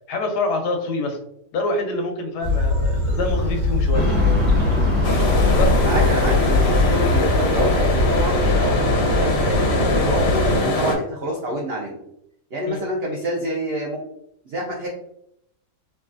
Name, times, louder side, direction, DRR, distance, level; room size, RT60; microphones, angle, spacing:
voice 1, 0.1-1.2 1.5-4.1 5.6-5.8 12.6-12.8, left 2 dB, 90° left, 4 dB, 1.2 m, -26 dB
sound 1, 2.4-10.6, left 2 dB, 50° right, 1.0 m, -21 dB
sound 2, 3.9-8.5, left 1 dB, 10° right, 0.8 m, -25 dB
sound 3, 5.0-11.0, left 2 dB, 60° left, 0.7 m, -22 dB
voice 2, 5.8-12.0 12.5-14.0 14.5-14.9, right 1 dB, 75° right, -2 dB, 0.5 m, -27 dB
3.1 x 2.3 x 2.5 m, 0.76 s
omnidirectional pair, 1.7 m